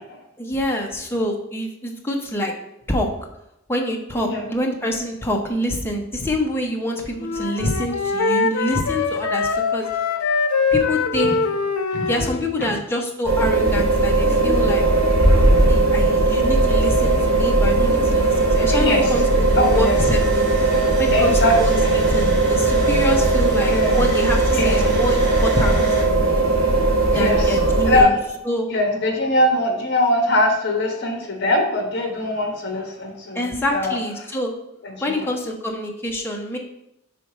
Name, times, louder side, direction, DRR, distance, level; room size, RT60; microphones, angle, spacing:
voice 1, 0.4-2.5 2.9-3.1 3.7-9.9 10.7-11.4 12.1-14.8 15.7-20.5 21.0-21.7 22.1-25.8 27.1-28.1 28.5-28.7 33.3-34.5 35.0-36.6, left 1 dB, 10° left, 1 dB, 0.7 m, -26 dB
Wind instrument woodwind instrument, 7.2-12.5, left 4 dB, 90° left, 0.5 m, -22 dB
sound 1, 13.2-28.0, right 2 dB, 65° right, 1.3 m, -18 dB
sound 2, 16.1-26.0, right 1 dB, 50° right, 2.0 m, -36 dB
voice 2, 18.6-19.1 19.6-20.0 20.7-20.9 21.1-22.0 23.7-24.0 24.5-24.9 26.9-27.6 27.9-28.2 28.7-34.0 34.8-35.3, left 1 dB, 50° left, 3 dB, 1.2 m, -22 dB
5.0 x 4.0 x 4.9 m, 0.84 s
head